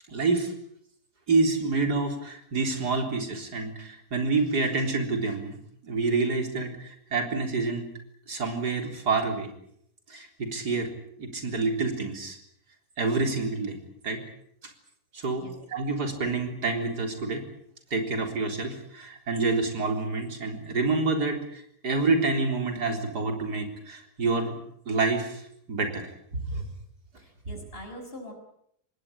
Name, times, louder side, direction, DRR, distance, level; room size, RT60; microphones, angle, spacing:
voice 1, 0.1-0.5 1.3-5.6 5.8-7.9 8.3-9.5 10.1-10.9 11.2-12.4 13.0-13.8 14.0-14.2 14.6-14.7 15.1-17.4 17.9-24.5 24.9-25.4 25.7-26.0 26.4-26.6, right 3 dB, 90° right, 4 dB, 4.4 m, -27 dB
voice 2, 27.2-28.3, equal, 35° left, 4 dB, 6.3 m, -43 dB
26.0 x 19.5 x 8.7 m, 0.71 s
omnidirectional pair, 1.7 m